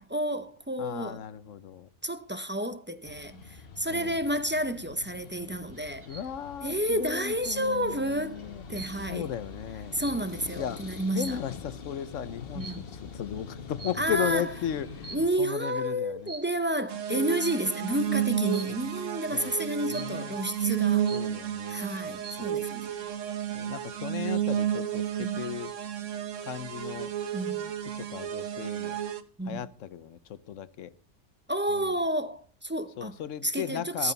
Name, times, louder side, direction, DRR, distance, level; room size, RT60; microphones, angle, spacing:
voice 1, 0.0-1.2 2.0-6.1 6.6-8.4 8.7-9.3 9.9-11.4 12.5-12.8 14.0-14.4 15.1-21.1 21.7-23.0 25.2-25.4 27.3-27.7 29.4-29.6 31.5-33.2 33.4-34.1, right 1 dB, 15° right, 0.5 m, -30 dB
voice 2, 0.8-1.9 3.9-4.2 6.1-8.6 9.1-10.0 10.6-10.8 11.1-16.3 18.7-18.8 19.3-20.4 21.1-22.6 23.5-25.7 26.4-27.1 28.0-29.0 29.5-30.9 31.7-31.9 33.0-34.1, left 9 dB, 90° left, 1.1 m, -36 dB
sound 1, 3.0-15.3, left 5 dB, 55° left, 1.2 m, -44 dB
sound 2, 5.7-6.4 7.4-8.0 8.3-10.6 11.2-11.6 12.6-13.0 13.8-14.4 14.9-15.6 16.3-16.6 17.4-17.8 18.5-18.9 19.9-20.4 20.8-20.9 21.1-21.7 22.0-22.6, right 4 dB, 45° right, 1.9 m, -45 dB
sound 3, 16.9-29.2, right 10 dB, 80° right, 1.3 m, -32 dB
14.5 x 12.5 x 4.0 m
omnidirectional pair, 1.3 m